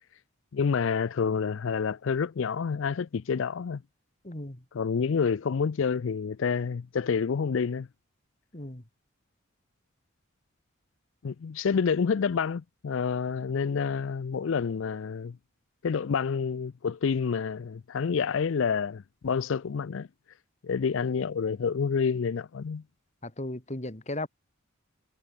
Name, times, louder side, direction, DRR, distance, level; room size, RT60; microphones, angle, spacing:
voice 1, 0.5-3.8 4.7-7.9 11.2-15.4 15.8-20.1 20.6-22.8, left 6 dB, 60° left, 0.4 m, -28 dB
voice 2, 4.2-4.6 8.5-8.8 23.2-24.3, left 1 dB, 30° left, 1.9 m, -36 dB
head